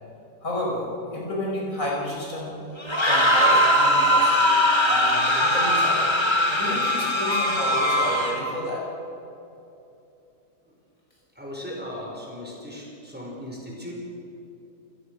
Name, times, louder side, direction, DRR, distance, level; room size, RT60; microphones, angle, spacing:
voice 1, 0.4-2.5 3.0-4.5 4.9-8.8, left 1 dB, 50° left, -4 dB, 6.5 m, -31 dB
sound 1, 2.8-8.6, equal, 15° left, 1.9 m, -21 dB
voice 2, 11.4-13.9, left 1 dB, 5° right, -2 dB, 5.5 m, -37 dB
28.0 x 18.5 x 6.6 m, 2.8 s
omnidirectional pair, 1.7 m